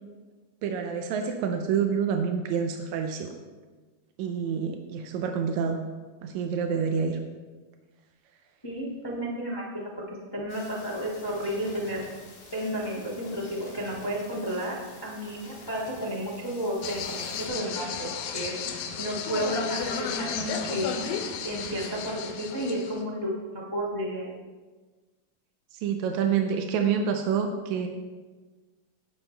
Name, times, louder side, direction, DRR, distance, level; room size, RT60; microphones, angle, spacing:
voice 1, 0.6-3.3 4.2-5.8 6.2-7.2 25.7-27.9, right 6 dB, 80° right, 4 dB, 1.7 m, -27 dB
voice 2, 8.6-9.9 10.3-12.0 12.5-21.0 21.4-24.3, equal, 35° left, -6 dB, 0.3 m, -32 dB
sound 1, 10.5-17.5, left 3 dB, 60° left, 2.9 m, -48 dB
sound 2, 16.8-23.0, left 6 dB, 85° left, 2.6 m, -33 dB
16.0 x 6.4 x 3.3 m, 1.3 s
omnidirectional pair, 4.0 m